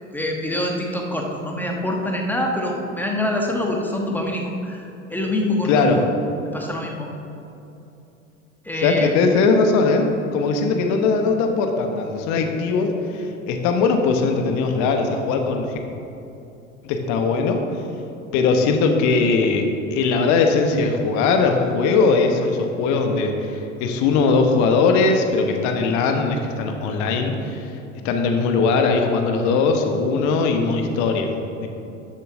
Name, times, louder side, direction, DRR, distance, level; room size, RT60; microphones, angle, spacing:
voice 1, 0.1-5.8 6.4-7.1 8.6-9.1, left 1 dB, 5° left, 0 dB, 1.3 m, -25 dB
voice 2, 5.6-6.0 8.8-10.1 10.3-15.8 16.8-17.6 18.3-27.7 28.0-31.3 31.6-31.7, left 4 dB, 45° left, 4 dB, 1.2 m, -20 dB
13.0 x 7.4 x 3.8 m, 2.8 s
figure-of-eight pair, 75°, 39 cm